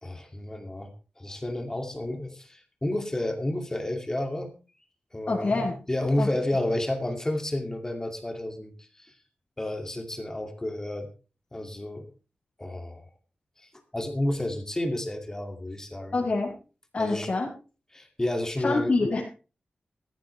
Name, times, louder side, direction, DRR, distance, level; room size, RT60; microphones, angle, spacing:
voice 1, 0.0-4.5 5.1-9.2 9.6-11.1 11.5-12.1 12.6-13.1 13.6-16.2 17.0-17.3 17.9-18.9, left 1 dB, 15° left, 4 dB, 2.4 m, -31 dB
voice 2, 5.3-5.8 6.2-6.3 16.1-16.5 16.9-17.5 18.6-19.2, left 3 dB, 45° left, -4 dB, 5.4 m, -26 dB
17.0 x 15.0 x 3.3 m, 0.35 s
wide cardioid pair, 140°, 3 cm